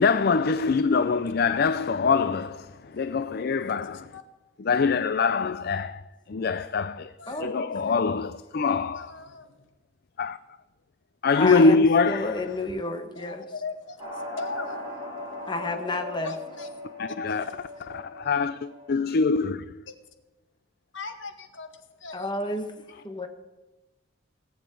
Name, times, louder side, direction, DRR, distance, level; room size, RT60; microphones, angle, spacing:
voice 1, 0.0-4.2 4.6-7.1 7.4-9.1 10.2-10.4 11.2-12.6 17.0-19.7, left 4 dB, 50° left, 0.4 m, -24 dB
voice 2, 3.8-4.2 5.1-5.3 7.2-7.4 8.9-9.6 11.5-11.7 13.1-14.9 16.2-16.7 17.3-17.5 19.9-20.0 20.9-22.3, left 4 dB, 70° left, 1.7 m, -39 dB
voice 3, 7.3-8.0 11.3-13.4 15.5-16.3 22.1-22.7 23.0-23.3, left 2 dB, 25° left, 1.3 m, -31 dB
sound 1, 14.0-19.0, left 1 dB, 25° right, 6.2 m, -39 dB
18.0 x 7.2 x 9.2 m
head